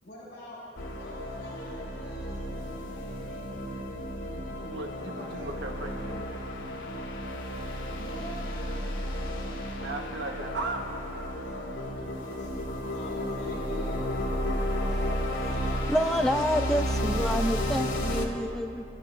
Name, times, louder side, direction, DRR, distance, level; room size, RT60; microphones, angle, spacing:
voice 1, 0.0-4.1 5.0-5.5 8.0-10.4 11.3-12.5 12.9-14.6 15.3-16.3, equal, 60° left, -6 dB, 4.7 m, -47 dB
sound 1, 0.8-18.3, equal, 90° left, 2.0 m, -32 dB
voice 2, 4.3-6.3 9.7-11.4, right 2 dB, 70° right, 3 dB, 1.2 m, -37 dB
voice 3, 15.9-18.8, equal, ahead, 6 dB, 0.5 m, -28 dB
26.5 x 13.5 x 3.3 m, 2.6 s
head